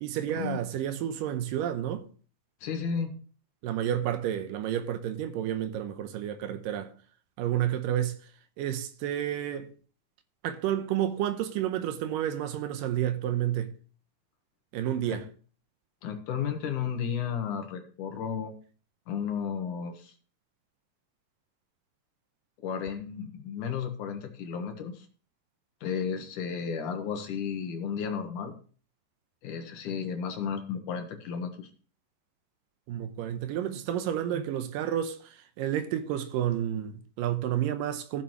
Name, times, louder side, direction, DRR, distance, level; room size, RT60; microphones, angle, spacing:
voice 1, 0.0-2.1 3.6-6.9 7.4-8.2 8.6-9.7 10.4-13.7 14.7-15.2 32.9-38.2, right 11 dB, 80° right, 2.4 m, -30 dB
voice 2, 2.6-3.1 15.1-15.2 16.0-18.5 19.1-20.1 22.6-25.1 25.8-28.5 29.4-31.7, left 7 dB, 70° left, 2.6 m, -33 dB
16.0 x 6.9 x 3.0 m
omnidirectional pair, 4.0 m